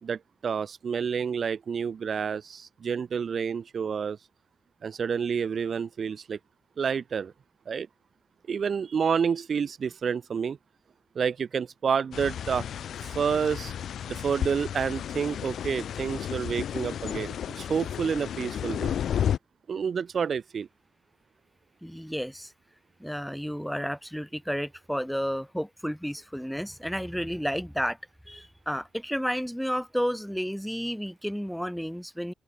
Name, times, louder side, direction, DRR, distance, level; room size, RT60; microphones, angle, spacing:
voice 1, 0.0-4.2 4.8-6.4 6.8-7.3 7.7-7.9 8.5-10.6 11.2-12.7 13.0-13.7 14.1-19.0 19.7-20.7, right 6 dB, 55° right, 1.8 m, -29 dB
sound 1, 12.1-19.4, left 9 dB, 75° left, 1.2 m, -32 dB
voice 2, 21.8-22.5 23.0-28.0 28.3-32.3, equal, ahead, 3.6 m, -31 dB
cardioid pair, 85°, 0 cm